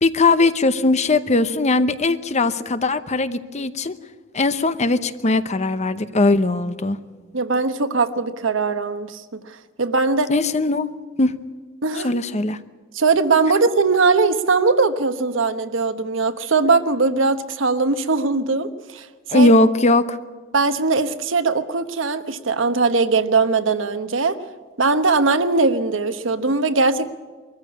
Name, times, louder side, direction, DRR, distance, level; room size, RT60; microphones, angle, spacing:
voice 1, 0.0-3.9 4.3-7.0 10.3-10.9 11.2-11.3 12.0-12.6 19.3-20.2, left 2 dB, 35° left, 12 dB, 0.8 m, -19 dB
voice 2, 7.3-9.4 9.8-10.3 11.8-12.1 12.9-19.5 20.5-24.4 24.8-27.1, right 4 dB, 70° right, 10 dB, 1.1 m, -20 dB
22.0 x 14.5 x 9.6 m, 1.4 s
head